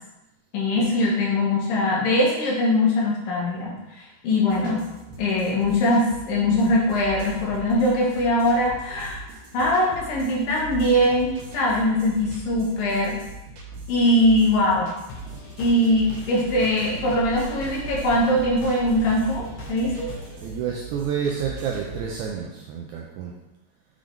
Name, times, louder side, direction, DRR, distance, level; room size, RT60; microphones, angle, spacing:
voice 1, 0.5-4.8 5.2-9.2 9.5-13.1 13.9-14.9 15.6-20.1, left 1 dB, 80° left, -4 dB, 3.0 m, -21 dB
sound 1, 4.5-22.3, right 2 dB, 70° right, 2.5 m, -40 dB
sound 2, 15.1-20.5, right 2 dB, 60° left, 2.0 m, -39 dB
voice 2, 20.4-23.3, right 7 dB, 85° right, -1 dB, 1.7 m, -29 dB
7.5 x 3.8 x 3.4 m, 0.98 s
omnidirectional pair, 4.0 m